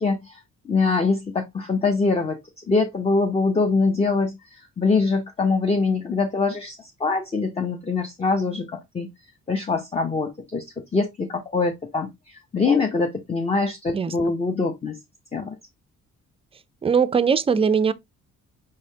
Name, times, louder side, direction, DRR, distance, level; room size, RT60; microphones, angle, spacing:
voice 1, 0.0-2.4 2.7-9.1 9.5-15.0 15.3-15.6, left 4 dB, 20° left, 0.6 m, -24 dB
voice 2, 16.8-17.9, right 6 dB, 20° right, 0.4 m, -20 dB
4.6 x 3.1 x 2.7 m
cardioid pair, 90°, 30 cm